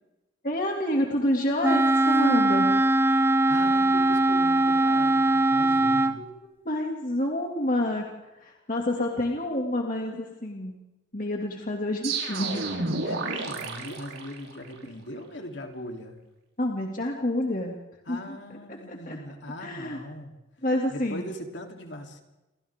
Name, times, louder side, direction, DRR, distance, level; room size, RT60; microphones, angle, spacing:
voice 1, 0.4-2.8 6.1-6.4 6.6-8.1 8.4-10.8 11.1-12.6 16.6-17.7 18.1-18.4 18.7-19.2 19.6-20.0 20.6-21.3, left 1 dB, 40° left, 0 dB, 2.5 m, -28 dB
Wind instrument woodwind instrument, 1.6-6.2, right 2 dB, 10° right, 0.7 m, -21 dB
voice 2, 3.5-6.2 13.0-16.2 18.1-20.4 20.9-22.2, left 1 dB, 60° left, 2 dB, 3.4 m, -40 dB
sound 1, 12.0-14.8, right 3 dB, 85° right, 5.4 m, -31 dB
29.5 x 25.0 x 3.7 m, 1.0 s
head